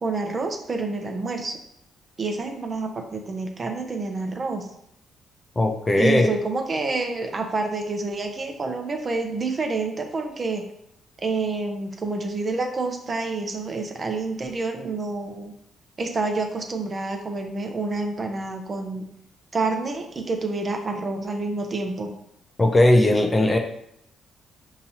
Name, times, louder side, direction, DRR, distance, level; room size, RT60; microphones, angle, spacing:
voice 1, 0.0-1.6 2.2-4.7 5.9-10.6 11.2-15.5 16.0-19.0 19.5-22.1, right 3 dB, 35° right, 3 dB, 0.7 m, -28 dB
voice 2, 5.6-6.3 22.6-23.6, left 1 dB, 20° left, 3 dB, 0.5 m, -18 dB
5.3 x 2.9 x 2.8 m, 0.74 s
cardioid pair, 90°, 0 cm